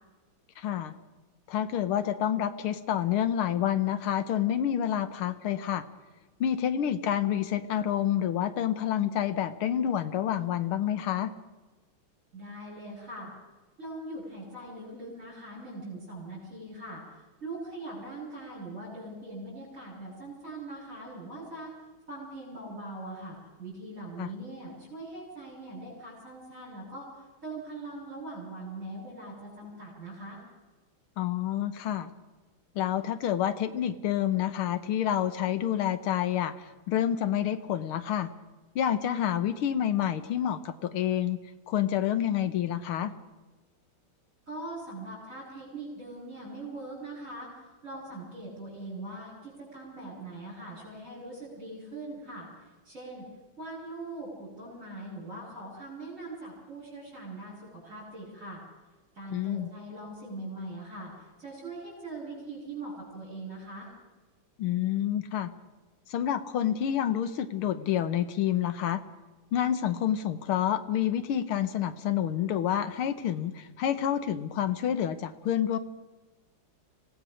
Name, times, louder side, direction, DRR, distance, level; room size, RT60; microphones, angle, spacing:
voice 1, 0.6-0.9 1.5-5.8 6.4-11.3 24.2-24.3 31.2-32.1 32.8-38.3 38.8-41.4 41.7-43.1 59.3-59.7 64.6-65.5 66.1-69.0 69.5-75.8, left 10 dB, 85° left, 12 dB, 1.9 m, -28 dB
voice 2, 12.3-13.3 13.8-21.7 22.1-30.4 44.5-47.5 47.8-53.3 53.6-58.6 59.1-63.9, right 2 dB, 35° right, -6 dB, 6.6 m, -41 dB
26.0 x 17.5 x 6.4 m, 1.2 s
omnidirectional pair, 2.3 m